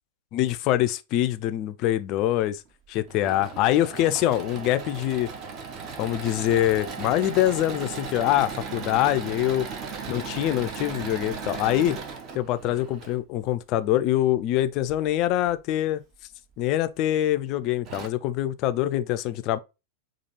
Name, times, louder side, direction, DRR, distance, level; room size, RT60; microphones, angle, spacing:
voice 1, 0.3-2.6 2.9-5.3 6.0-9.7 10.1-12.0 12.3-16.0 16.6-19.6, left 13 dB, 40° left, 0.3 m, -24 dB
Engine / Mechanisms, 2.9-13.2 14.8-15.5 16.1-16.2 16.5-16.6 17.5-17.6 17.8-18.1, right 5 dB, 35° right, 0.7 m, -37 dB
4.2 x 2.4 x 2.9 m
figure-of-eight pair, 90°, 0 cm